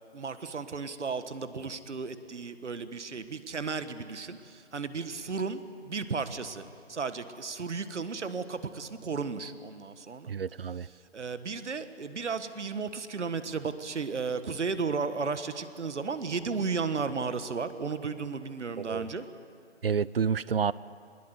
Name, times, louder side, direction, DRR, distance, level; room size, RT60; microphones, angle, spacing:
voice 1, 0.1-6.6 6.9-10.3 10.8-19.3, right 5 dB, 80° right, 11 dB, 1.6 m, -34 dB
voice 2, 10.3-10.9 18.8-19.1 19.8-20.7, right 6 dB, 55° right, 21 dB, 0.5 m, -29 dB
21.0 x 20.5 x 8.2 m, 2.3 s
hypercardioid pair, 170°, 35 cm